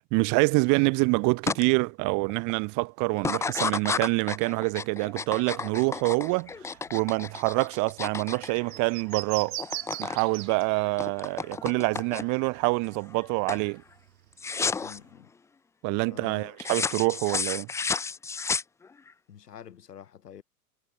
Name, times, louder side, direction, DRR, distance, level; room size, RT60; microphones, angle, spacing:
voice 1, 0.1-9.6 10.0-13.8 15.8-17.7, right 30 dB, 40° right, 1.2 m, -26 dB
sound 1, 1.5-1.6 2.1-2.5 3.2-9.2 9.5-10.2 10.5-12.5 12.9-13.2 13.5-13.7 14.4-15.0 16.6-19.1, left 5 dB, 5° left, 0.5 m, -32 dB
sound 2, 5.3-13.1 13.3-15.0, right 17 dB, 60° right, 1.2 m, -41 dB
voice 2, 14.8-15.3 16.1-16.8 19.3-20.4, left 9 dB, 80° left, 2.3 m, -47 dB
hypercardioid pair, 105°, 47 cm